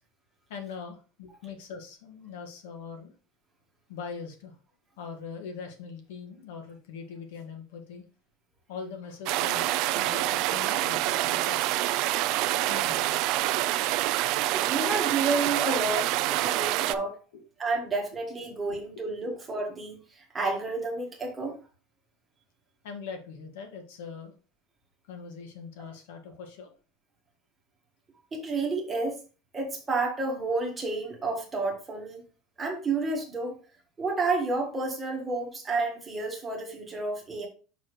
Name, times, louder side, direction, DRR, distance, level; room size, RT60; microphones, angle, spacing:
voice 1, 0.5-3.1 3.9-4.6 5.0-8.0 8.7-11.9 12.7-13.1 17.3-17.4 18.7-18.8 19.3-19.4 22.8-24.3 25.1-26.7, left 5 dB, 85° left, 1.9 m, -42 dB
sound 1, 9.3-16.9, right 15 dB, 45° right, 0.4 m, -26 dB
voice 2, 14.5-17.2 17.6-21.6 28.3-29.2 29.5-32.2 32.6-33.6 34.0-37.5, right 3 dB, 10° right, 1.5 m, -30 dB
7.2 x 5.8 x 3.2 m
cardioid pair, 175°, 0 cm